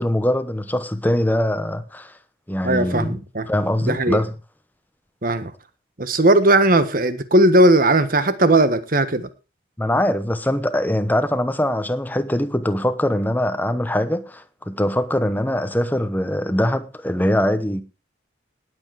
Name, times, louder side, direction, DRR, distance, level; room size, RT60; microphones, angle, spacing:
voice 1, 0.0-2.2 2.5-3.2 3.5-4.3 9.8-17.8, left 1 dB, 10° left, 1.0 m, -22 dB
voice 2, 2.6-3.5 3.8-4.2 5.2-5.5 6.0-9.3, right 1 dB, 45° right, 1.4 m, -17 dB
18.5 x 8.0 x 4.8 m
head